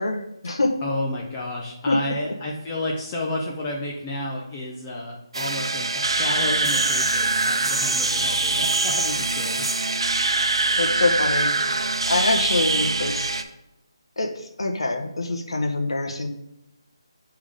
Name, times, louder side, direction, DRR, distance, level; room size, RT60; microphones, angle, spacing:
voice 1, 0.0-0.8 1.9-2.0 10.8-11.5 12.1-13.3 14.2-16.3, left 2 dB, 75° left, 4 dB, 1.2 m, -24 dB
voice 2, 0.8-10.0, left 1 dB, 10° left, -2 dB, 0.4 m, -31 dB
sound 1, 5.3-13.4, right 3 dB, 70° right, 0.7 m, -23 dB
6.7 x 3.6 x 5.0 m, 0.89 s
hypercardioid pair, 180°, 3 cm